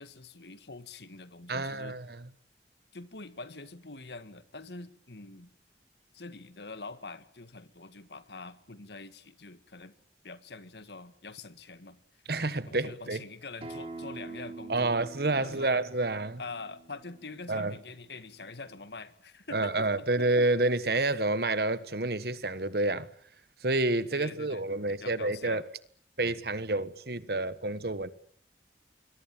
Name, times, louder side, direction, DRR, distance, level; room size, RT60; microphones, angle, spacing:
voice 1, 0.0-2.0 2.9-5.5 6.1-10.0 10.2-12.0 12.7-15.0 15.3-15.8 16.4-19.9 20.2-20.3 24.1-25.7, left 3 dB, 70° left, 1.9 m, -45 dB
voice 2, 1.5-2.3 12.3-13.2 14.7-16.4 17.5-17.7 19.5-23.1 23.6-25.6 26.2-28.1, right 2 dB, 60° right, 1.4 m, -29 dB
Acoustic guitar, 13.6-18.8, right 3 dB, 35° right, 4.3 m, -46 dB
26.0 x 22.0 x 9.1 m
head